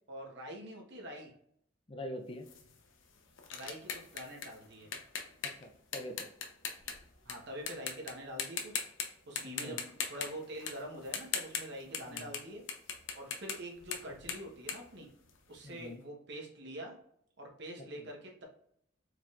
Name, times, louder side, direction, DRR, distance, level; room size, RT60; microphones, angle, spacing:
voice 1, 0.1-1.3 3.5-4.9 7.2-8.7 9.3-12.6 13.1-15.1 15.5-16.9 17.4-18.4, right 1 dB, 60° right, 1 dB, 1.1 m, -45 dB
voice 2, 1.9-2.5 5.4-6.3 9.4-9.8 11.9-12.3 15.6-16.0 18.0-18.1, left 1 dB, 30° left, 5 dB, 0.4 m, -44 dB
sound 1, 2.5-7.3 7.7-8.1 8.4-9.1 9.4-12.4 12.7-15.7, left 6 dB, 85° left, 0.7 m, -39 dB
4.7 x 3.6 x 2.4 m, 0.70 s
head